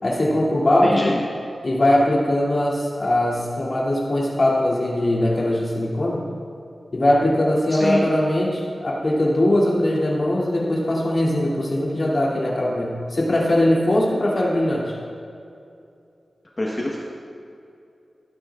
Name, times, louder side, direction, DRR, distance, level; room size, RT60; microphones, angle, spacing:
voice 1, 0.0-1.0 1.6-6.2 6.9-14.9, left 1 dB, 50° left, -5 dB, 2.7 m, -20 dB
voice 2, 0.8-1.2 7.7-8.0 16.6-17.0, left 1 dB, 25° left, -4 dB, 1.2 m, -24 dB
16.0 x 10.5 x 2.5 m, 2.5 s
wide cardioid pair, 115°, 0 cm